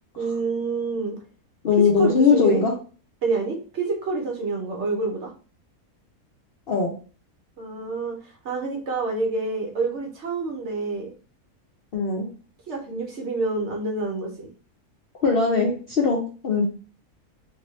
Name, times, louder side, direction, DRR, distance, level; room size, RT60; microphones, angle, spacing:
voice 1, 0.1-1.2 1.7-2.6 3.2-5.3 7.6-11.1 12.7-14.5, right 3 dB, 55° right, 1 dB, 1.0 m, -28 dB
voice 2, 1.6-2.7 6.7-6.9 11.9-12.3 15.2-16.6, left 5 dB, 60° left, -1 dB, 0.6 m, -20 dB
2.7 x 2.6 x 3.1 m, 0.37 s
omnidirectional pair, 1.6 m